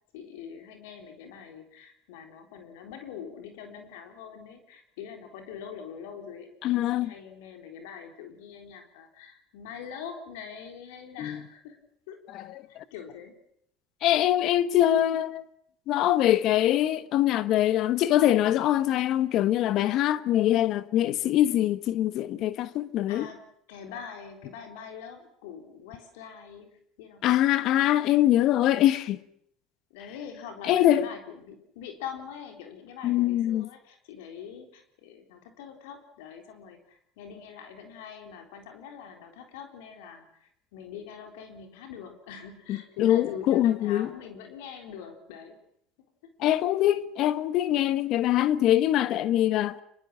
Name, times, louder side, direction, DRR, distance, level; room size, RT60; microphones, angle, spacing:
voice 1, 0.1-11.8 12.1-13.3 23.1-23.4 23.7-27.3 29.9-45.6 46.2-46.3, left 7 dB, 80° left, 3.8 m, -43 dB
voice 2, 6.6-7.1 11.2-11.4 12.3-12.8 14.0-15.4 15.9-23.3 27.2-29.2 30.6-31.1 33.0-33.7 42.7-44.1 46.4-49.8, left 13 dB, 60° left, 1.2 m, -23 dB
24.5 x 22.0 x 7.3 m
hypercardioid pair, 85°, 0 cm